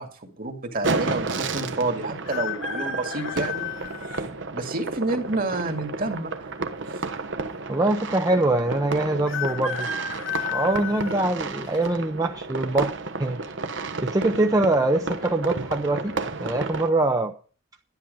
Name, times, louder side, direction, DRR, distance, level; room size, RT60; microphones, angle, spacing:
voice 1, 0.0-3.7 4.0-4.2 4.5-6.5, right 2 dB, 45° right, 5 dB, 2.2 m, -29 dB
sound 1, 0.8-16.9, right 3 dB, 65° right, 1.2 m, -32 dB
sound 2, 2.2-4.3 4.9-5.0 6.1-6.8 7.1-7.2 7.3-7.4 9.3-11.9 12.4-12.8 13.9-14.3 14.5-14.6 15.2-15.6 16.0-16.2, left 6 dB, 70° left, 1.2 m, -33 dB
voice 2, 7.7-9.9 10.5-12.9 13.2-13.4 14.0-16.1 16.4-17.3, right 2 dB, 20° right, 4 dB, 0.7 m, -23 dB
11.5 x 10.5 x 5.4 m, 0.40 s
head